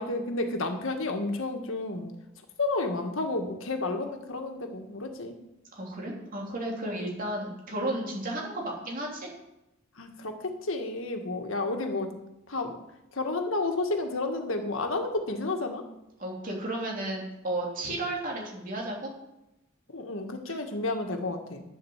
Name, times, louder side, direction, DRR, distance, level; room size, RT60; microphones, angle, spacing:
voice 1, 0.0-2.1 2.6-5.4 10.0-12.1 12.5-12.8 13.1-15.8 19.9-21.6, left 2 dB, 70° left, 5 dB, 1.7 m, -31 dB
voice 2, 5.7-9.3 16.2-19.1 20.5-20.6, right 1 dB, 40° right, -1 dB, 3.4 m, -33 dB
11.0 x 7.9 x 7.2 m, 0.91 s
head